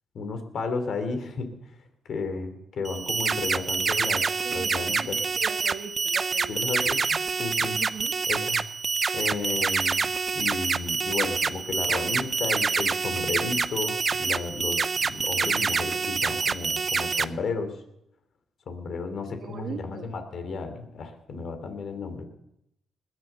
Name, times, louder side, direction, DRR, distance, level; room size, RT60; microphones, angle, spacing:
voice 1, 0.1-1.5 2.1-5.2 6.5-7.8 8.3-8.6 9.1-17.7 18.7-22.2, left 4 dB, 65° left, 7 dB, 3.1 m, -33 dB
sound 1, 2.8-17.2, right 5 dB, 45° right, 0.7 m, -27 dB
voice 2, 4.4-6.7 7.8-8.1 19.4-20.1, right 6 dB, 65° right, 2 dB, 1.6 m, -40 dB
20.0 x 9.5 x 7.0 m, 0.83 s
cardioid pair, 70°, 0 cm